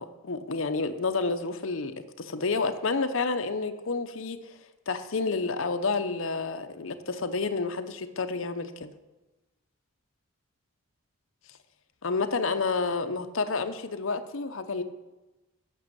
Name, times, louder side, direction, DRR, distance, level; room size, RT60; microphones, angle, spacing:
voice 1, 0.0-4.6 4.9-8.9 12.0-14.8, left 4 dB, 65° left, 8 dB, 0.8 m, -30 dB
9.1 x 6.2 x 7.7 m, 1.1 s
head